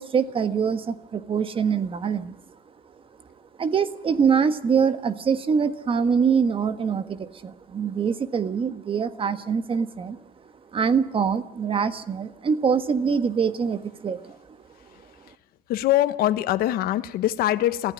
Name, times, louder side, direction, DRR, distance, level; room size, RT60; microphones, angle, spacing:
voice 1, 0.0-2.4 3.6-10.2 10.7-14.4, right 6 dB, 35° right, 11 dB, 1.5 m, -24 dB
voice 2, 15.7-17.9, left 13 dB, 85° left, 11 dB, 1.1 m, -23 dB
22.5 x 15.0 x 8.9 m, 0.89 s
cardioid pair, 125°, 15 cm